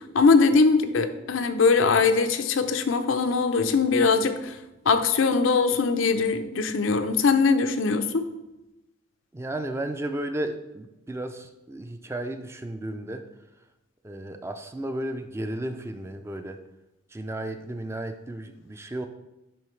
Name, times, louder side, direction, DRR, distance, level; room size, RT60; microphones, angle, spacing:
voice 1, 0.1-4.5 4.9-8.3, left 4 dB, 80° left, 8 dB, 0.5 m, -21 dB
voice 2, 9.3-13.2 14.0-16.6 17.1-19.1, right 1 dB, 15° right, 7 dB, 0.3 m, -33 dB
10.0 x 3.7 x 3.2 m, 0.97 s
head